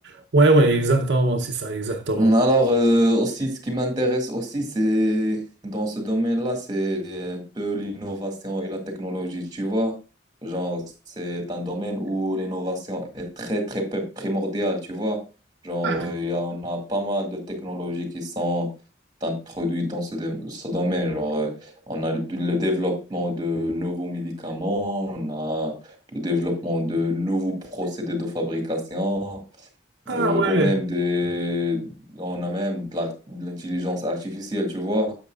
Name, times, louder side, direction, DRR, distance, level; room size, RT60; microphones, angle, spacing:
voice 1, 0.3-2.3 15.8-16.1 30.1-30.7, right 2 dB, 75° right, 0.8 m, -20 dB
voice 2, 2.1-9.9 10.4-10.8 11.2-15.2 15.6-18.7 19.2-25.7 26.1-29.4 30.1-35.1, equal, 25° right, 2.1 m, -26 dB
10.5 x 7.3 x 2.4 m
head